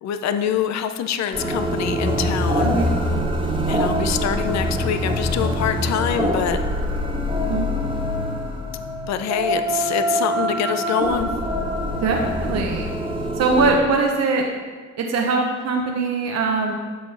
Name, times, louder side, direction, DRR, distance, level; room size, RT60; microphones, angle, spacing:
voice 1, 0.0-2.8 3.7-6.6 9.1-11.3, left 9 dB, 65° left, 9 dB, 0.6 m, -25 dB
sound 1, 1.3-13.7, equal, 15° right, 1.5 m, -24 dB
voice 2, 12.0-13.0 13.3-14.4 15.0-16.7, right 3 dB, 60° right, 1 dB, 0.9 m, -21 dB
9.1 x 6.2 x 3.3 m, 1.4 s
cardioid pair, 90°, 30 cm